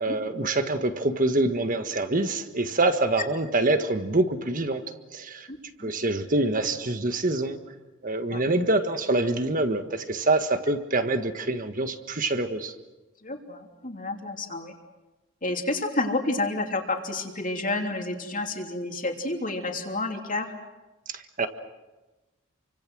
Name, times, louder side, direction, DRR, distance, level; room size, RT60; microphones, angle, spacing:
voice 1, 0.0-4.8 5.1-5.5 5.8-7.6 8.0-12.7 21.1-21.5, right 2 dB, 40° right, 8 dB, 1.6 m, -25 dB
voice 2, 5.5-5.9 8.3-8.4 13.2-14.7 15.4-20.5, left 2 dB, 40° left, 3 dB, 3.1 m, -30 dB
29.0 x 25.0 x 6.3 m, 1.1 s
head